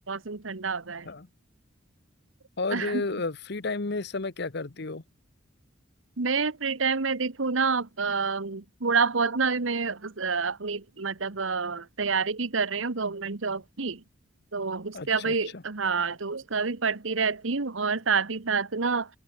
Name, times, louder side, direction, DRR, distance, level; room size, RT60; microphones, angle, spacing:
voice 1, 0.1-1.1 2.7-3.0 6.2-14.0 14.5-19.1, right 5 dB, 80° right, 1.3 m, -28 dB
voice 2, 2.6-5.0 14.9-15.6, left 3 dB, 60° left, 1.1 m, -32 dB
open air
head